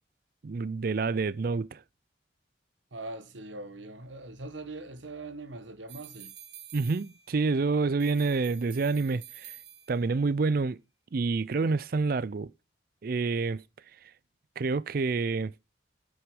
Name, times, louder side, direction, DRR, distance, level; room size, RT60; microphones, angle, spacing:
voice 1, 0.4-1.8 6.7-9.6 9.9-10.8 11.1-12.5 13.0-13.6 14.6-15.5, right 4 dB, 50° right, 0.4 m, -28 dB
voice 2, 2.9-6.3, right 2 dB, 85° right, 1.3 m, -41 dB
sound 1, 5.9-7.5 8.0-10.2, right 11 dB, 70° right, 1.2 m, -49 dB
8.0 x 6.2 x 5.2 m
head